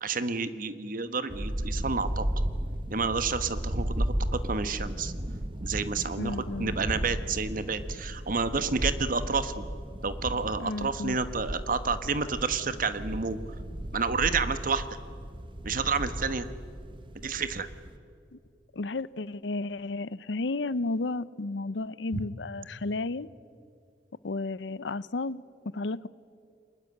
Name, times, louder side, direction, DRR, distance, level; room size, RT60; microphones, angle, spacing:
voice 1, 0.0-2.3 2.9-5.1 5.6-9.6 10.0-13.4 13.9-14.8 15.6-16.5 17.1-17.7, right 4 dB, 50° right, 12 dB, 1.3 m, -30 dB
sound 1, 1.3-18.0, right 1 dB, 30° right, 1.0 m, -35 dB
voice 2, 6.2-6.7 10.6-11.2 18.3-18.4 18.7-23.3 24.2-26.1, left 2 dB, 85° left, 19 dB, 0.7 m, -33 dB
24.0 x 20.5 x 9.7 m, 2.4 s
head